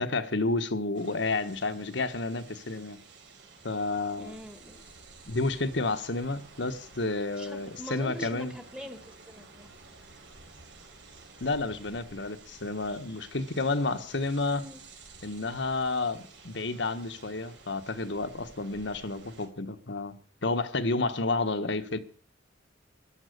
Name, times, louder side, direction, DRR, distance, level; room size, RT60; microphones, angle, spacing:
voice 1, 0.0-3.0 3.6-4.4 5.3-8.5 11.4-14.6 15.2-20.1 20.4-22.0, left 3 dB, 70° left, 1.4 m, -30 dB
sound 1, 0.9-19.5, right 3 dB, 75° right, 4.7 m, -52 dB
voice 2, 4.2-4.8 7.3-9.7 14.5-14.8, equal, 5° right, 1.7 m, -43 dB
14.5 x 11.5 x 6.7 m
head